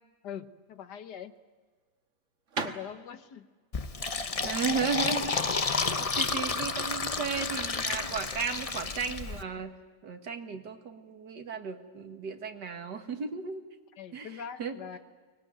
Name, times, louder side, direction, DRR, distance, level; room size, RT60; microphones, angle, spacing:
voice 1, 0.2-1.4 2.6-3.5 14.0-15.0, left 8 dB, 80° left, 10 dB, 1.7 m, -42 dB
sound 1, 0.7-6.3, right 4 dB, 50° right, 1.8 m, -41 dB
Fill (with liquid), 3.7-9.4, left 4 dB, 35° left, 0.6 m, -31 dB
voice 2, 4.4-5.4 6.0-9.7 10.0-13.6 14.1-14.3 14.6-14.7, right 6 dB, 80° right, 5 dB, 2.3 m, -34 dB
23.5 x 20.5 x 9.0 m, 1.4 s
omnidirectional pair, 1.8 m